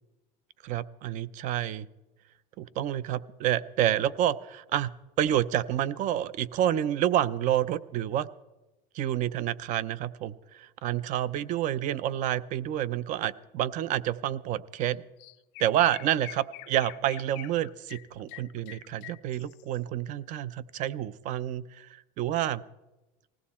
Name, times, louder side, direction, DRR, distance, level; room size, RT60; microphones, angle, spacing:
voice 1, 0.6-1.9 2.6-4.9 5.2-8.3 8.9-15.0 15.6-22.6, right 11 dB, 35° right, 18 dB, 0.5 m, -29 dB
Chirp tweet, 14.8-14.9 15.2-19.8, left 21 dB, 50° left, 0.5 m, -46 dB
20.0 x 16.5 x 4.2 m, 1.0 s
cardioid pair, 160°, 21 cm